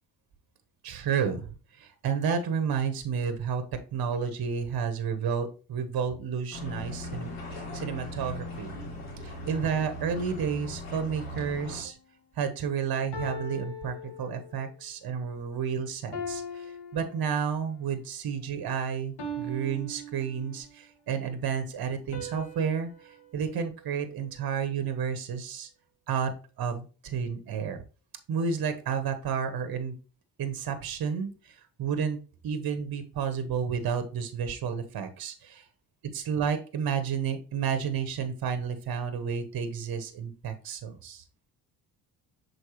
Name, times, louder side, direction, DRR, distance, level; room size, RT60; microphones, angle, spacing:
voice 1, 0.8-1.5 1.8-8.7 9.2-12.0 12.3-25.7 26.1-27.8 28.3-30.0 30.4-32.2 32.4-35.7 36.1-41.2, right 6 dB, 55° right, 9 dB, 1.3 m, -31 dB
sound 1, 6.5-11.8, left 1 dB, 90° left, 2.8 m, -39 dB
sound 2, 11.7-12.0 13.1-14.8 16.1-17.8 19.2-20.8 22.1-24.5, equal, 65° left, 1.9 m, -41 dB
6.5 x 4.7 x 3.1 m, 0.34 s
supercardioid pair, 65°, 43 cm